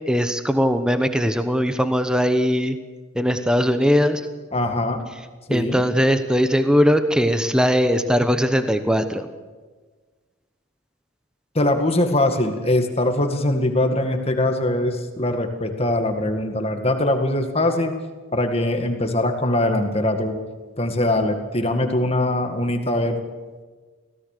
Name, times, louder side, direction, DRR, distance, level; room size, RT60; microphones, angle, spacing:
voice 1, 0.1-2.8 3.1-4.2 5.5-9.2, equal, 5° right, 9 dB, 1.0 m, -20 dB
voice 2, 4.5-5.0 5.5-5.8 11.5-17.9 18.3-20.4 20.8-23.2, left 1 dB, 25° left, 6 dB, 2.0 m, -22 dB
24.5 x 17.0 x 6.7 m, 1.4 s
head